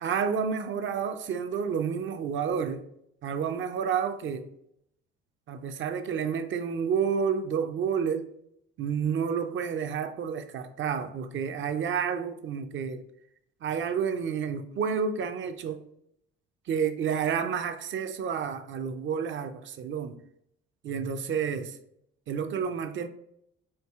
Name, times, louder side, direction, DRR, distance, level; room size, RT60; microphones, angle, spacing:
voice 1, 0.0-2.8 3.2-4.5 5.5-8.3 8.8-13.0 13.6-15.8 16.7-20.1 20.8-21.8 22.3-23.1, right 7 dB, 40° right, 0.4 m, -30 dB
4.5 x 2.6 x 2.3 m
hypercardioid pair, 55°, 29 cm